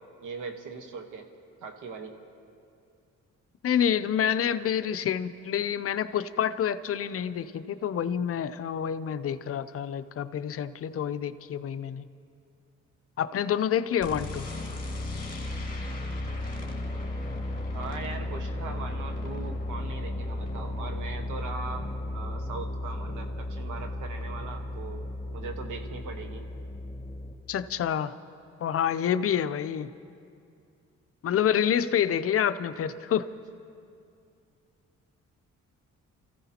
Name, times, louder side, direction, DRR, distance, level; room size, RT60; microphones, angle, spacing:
voice 1, 0.2-1.3 1.6-2.2 17.7-26.4, right 4 dB, 80° right, 5 dB, 1.4 m, -40 dB
voice 2, 3.6-12.0 13.2-14.5 27.5-28.1 28.6-29.9 31.2-33.3, left 9 dB, 50° left, 12 dB, 0.5 m, -28 dB
sound 1, 14.0-27.3, left 1 dB, 30° left, 2.1 m, -34 dB
28.0 x 15.0 x 2.9 m, 2.4 s
cardioid pair, 90°, 30 cm